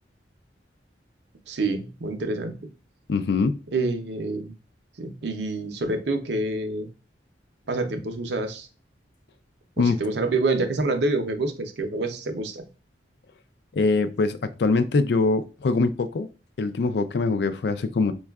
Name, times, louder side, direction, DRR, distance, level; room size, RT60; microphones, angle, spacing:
voice 1, 1.5-2.6 3.7-4.5 5.0-6.9 7.7-8.7 9.8-12.6, right 2 dB, 70° right, 0.6 m, -27 dB
voice 2, 3.1-3.6 9.8-10.0 13.7-16.3 16.6-18.1, left 3 dB, 65° left, 0.4 m, -23 dB
5.2 x 2.3 x 2.3 m
head